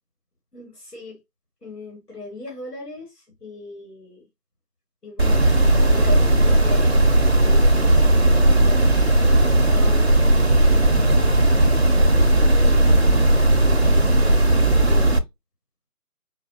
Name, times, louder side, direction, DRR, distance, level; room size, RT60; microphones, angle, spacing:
voice 1, 0.5-1.2 1.6-4.3 5.0-8.3 9.2-10.1 10.5-12.8 13.4-15.1, left 2 dB, 85° left, 1.9 m, -39 dB
sound 1, 5.2-15.2, right 1 dB, 45° right, 0.4 m, -16 dB
4.1 x 2.2 x 2.6 m
figure-of-eight pair, 165°, 46 cm